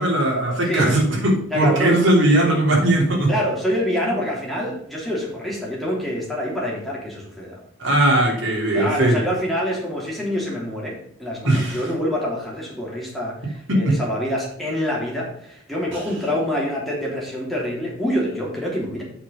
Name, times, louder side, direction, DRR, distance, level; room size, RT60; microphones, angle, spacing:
voice 1, 0.0-3.3 7.8-9.2 11.4-11.8 13.7-14.0, right 1 dB, 70° right, -2 dB, 3.6 m, -19 dB
voice 2, 1.5-1.9 3.3-7.6 8.7-19.0, equal, ahead, -4 dB, 3.2 m, -26 dB
8.3 x 6.0 x 5.2 m, 0.71 s
head